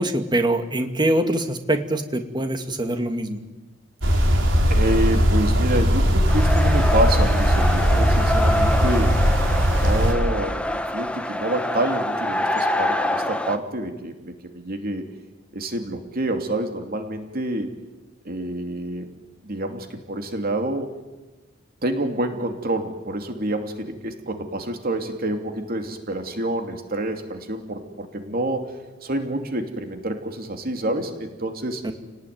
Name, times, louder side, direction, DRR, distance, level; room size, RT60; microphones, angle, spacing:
voice 1, 0.0-3.4 31.8-31.9, right 1 dB, 25° right, 6 dB, 2.2 m, -23 dB
sound 1, 4.0-10.1, equal, 70° right, 4.4 m, -19 dB
voice 2, 4.7-9.2 9.7-15.1 15.5-17.7 18.2-19.1 19.4-20.9 21.8-28.7 29.0-31.9, right 1 dB, 50° right, 5 dB, 2.7 m, -27 dB
sound 2, 6.3-13.6, left 1 dB, 5° left, 1.3 m, -26 dB
29.0 x 19.0 x 9.5 m, 1.2 s
head